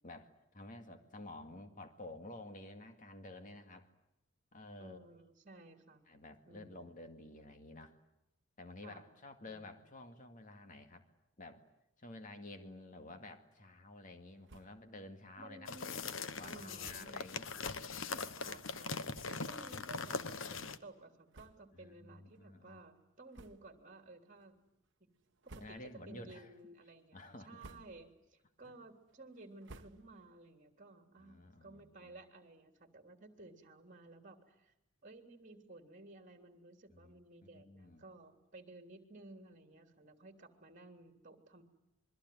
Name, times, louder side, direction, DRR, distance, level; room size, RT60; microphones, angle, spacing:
voice 1, 0.0-3.9 4.5-5.0 6.1-7.9 8.6-11.0 11.4-11.6 12.0-15.7 16.4-17.5 18.1-18.4 21.8-22.8 25.6-26.5 27.1-27.9 28.7-28.8 31.2-32.1 36.9-38.0, left 2 dB, 40° left, 7 dB, 2.1 m, -51 dB
voice 2, 4.8-6.1 6.5-6.9 8.8-9.0 9.4-9.8 15.4-16.1 16.4-17.3 18.4-18.9 19.2-24.6 25.4-34.7 35.0-41.6, right 2 dB, 35° right, 6 dB, 3.3 m, -56 dB
sound 1, 14.4-14.9 15.3-15.4 15.6-15.8 16.8-17.2 18.0-18.1 18.8-18.9 19.1-19.6 20.2-20.3 21.3-21.9 22.3-22.5 23.3-23.9 24.3-24.8 25.2-26.1 26.5-26.9 27.4-28.2 28.6-30.4, right 2 dB, 60° right, 1.1 m, -58 dB
sound 2, 15.7-20.8, left 4 dB, 65° left, 1.1 m, -41 dB
26.5 x 23.0 x 9.5 m, 0.83 s
head